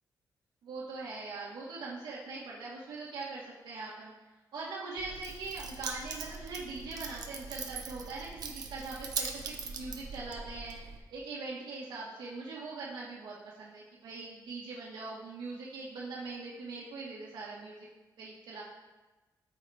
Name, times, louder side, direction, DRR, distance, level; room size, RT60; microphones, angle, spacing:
voice 1, 0.6-4.1 4.5-10.8 11.1-17.9 18.2-18.6, right 3 dB, 90° right, -6 dB, 1.8 m, -41 dB
Keys jangling, 5.0-11.0, right 5 dB, 60° right, 1.1 m, -41 dB
13.0 x 7.0 x 3.6 m, 1.2 s
wide cardioid pair, 155°, 7 cm